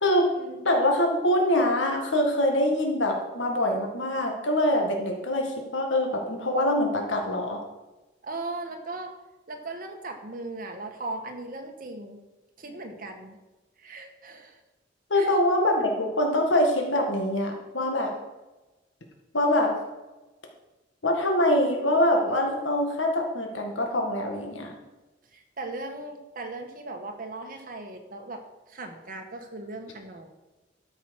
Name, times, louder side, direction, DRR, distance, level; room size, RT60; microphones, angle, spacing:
voice 1, 0.0-0.3 0.7-7.6 15.1-18.1 19.3-19.7 21.0-24.8, left 1 dB, 90° left, 1 dB, 1.8 m, -24 dB
voice 2, 8.2-9.1 9.5-12.2 12.6-13.4 13.8-14.6 15.1-15.3 25.3-28.4 28.7-30.3, right 2 dB, 50° right, 4 dB, 1.6 m, -38 dB
12.5 x 5.9 x 6.4 m, 1.1 s
head